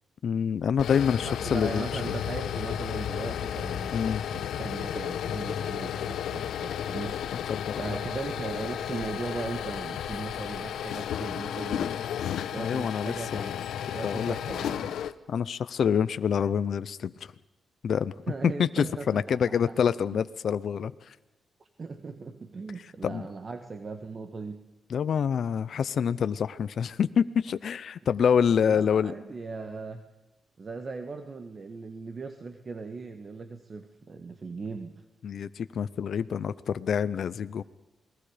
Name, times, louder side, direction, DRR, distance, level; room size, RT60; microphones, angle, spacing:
voice 1, 0.2-2.1 3.9-4.2 7.5-7.8 12.6-13.6 14.0-14.4 15.3-17.3 17.8-18.1 18.4-20.9 23.0-23.2 24.9-29.1 35.2-37.6, left 7 dB, 65° left, 13 dB, 0.7 m, -27 dB
sound 1, 0.6-15.1, left 9 dB, 90° left, 0.9 m, -33 dB
voice 2, 1.2-7.5 7.8-13.5 13.9-15.0 18.3-19.2 19.5-19.7 20.1-20.2 21.6-24.6 28.6-30.0 30.6-35.0, right 4 dB, 40° right, 7 dB, 1.5 m, -38 dB
29.0 x 20.5 x 5.1 m, 1.0 s
cardioid pair, 105°, 0 cm